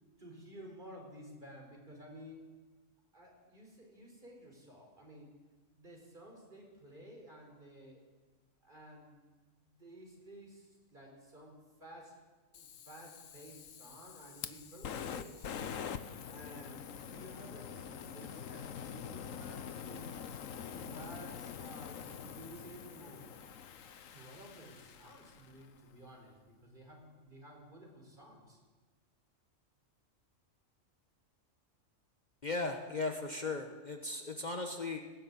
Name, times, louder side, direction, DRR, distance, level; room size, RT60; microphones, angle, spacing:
voice 1, 0.2-2.5 3.1-5.3 5.7-8.0 8.6-9.2 9.6-12.2 12.5-15.7 16.3-20.1 20.7-23.3 24.1-28.6, equal, 40° right, 1 dB, 5.1 m, -53 dB
Fire, 12.5-25.7, left 8 dB, 85° left, 1.4 m, -45 dB
voice 2, 32.4-35.0, left 3 dB, 35° left, 4 dB, 1.6 m, -37 dB
19.0 x 17.0 x 8.8 m, 1.3 s
omnidirectional pair, 1.3 m